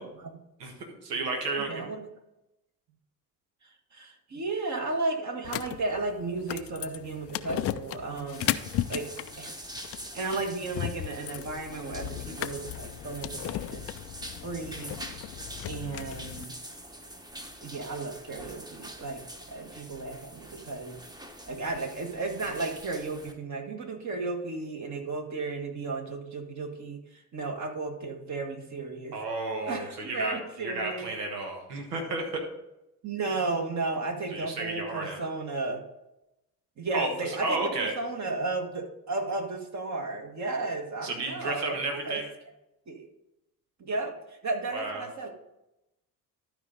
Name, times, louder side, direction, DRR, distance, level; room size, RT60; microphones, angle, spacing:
voice 1, 0.0-0.4 1.6-2.0 3.6-8.6 8.9-9.6 10.1-13.9 14.4-14.9 15.6-16.6 17.6-19.2 19.5-21.0 21.5-29.2 29.7-31.1 33.0-35.8 36.8-42.2 42.9-43.1 43.8-45.3, right 3 dB, 35° right, 4 dB, 1.5 m, -34 dB
voice 2, 0.6-1.8 29.1-32.4 34.3-35.2 36.9-37.9 41.0-42.2 44.7-45.1, right 3 dB, 80° right, 2 dB, 1.4 m, -32 dB
sound 1, 5.4-16.4, left 13 dB, 35° left, 0.4 m, -36 dB
sound 2, 8.3-23.3, right 1 dB, 10° right, 1.0 m, -45 dB
12.0 x 5.1 x 3.8 m, 0.91 s
figure-of-eight pair, 55°, 47 cm